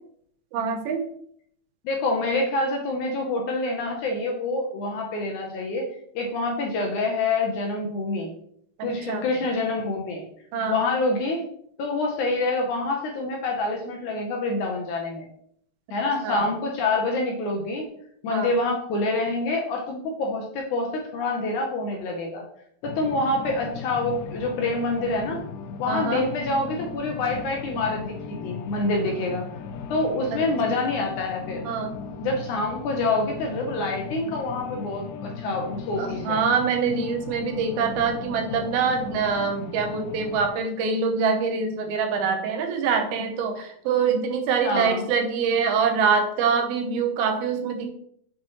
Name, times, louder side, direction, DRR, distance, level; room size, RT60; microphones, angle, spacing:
voice 1, 0.5-1.1 8.8-9.2 10.5-10.8 16.2-16.5 18.3-18.5 25.9-26.2 30.3-30.4 31.7-32.0 36.0-47.9, right 5 dB, 85° right, 5 dB, 2.8 m, -25 dB
voice 2, 1.8-5.9 6.2-8.3 8.8-10.2 10.7-11.4 11.8-15.3 15.9-17.9 18.2-22.4 22.8-25.4 25.8-29.4 29.9-31.7 32.2-36.4 44.6-45.1, left 2 dB, 70° left, 0 dB, 1.9 m, -26 dB
sound 1, 22.8-40.5, left 5 dB, 90° left, 1.8 m, -37 dB
7.1 x 5.1 x 3.0 m, 0.67 s
omnidirectional pair, 4.3 m